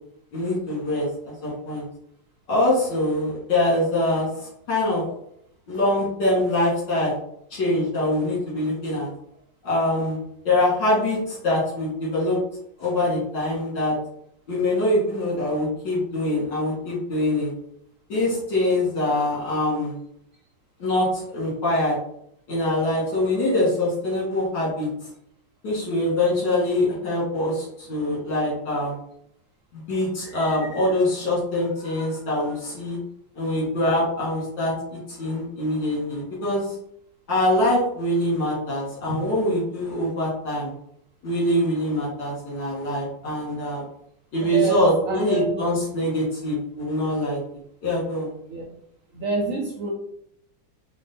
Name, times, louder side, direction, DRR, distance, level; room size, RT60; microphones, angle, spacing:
voice 1, 0.3-1.8 2.5-5.0 5.7-7.1 7.5-9.1 9.6-10.2 10.4-12.4 12.8-14.0 14.5-17.5 18.1-20.0 20.8-22.0 22.5-24.9 25.6-29.0 29.7-33.0 33.3-36.6 37.3-40.7 41.2-43.8 44.3-47.4 47.8-48.3, left 1 dB, 75° left, -6 dB, 2.6 m, -24 dB
voice 2, 44.5-45.5 48.5-48.6 49.1-49.9, right 4 dB, 60° right, -1 dB, 0.9 m, -27 dB
4.5 x 2.2 x 4.2 m, 0.71 s
omnidirectional pair, 2.0 m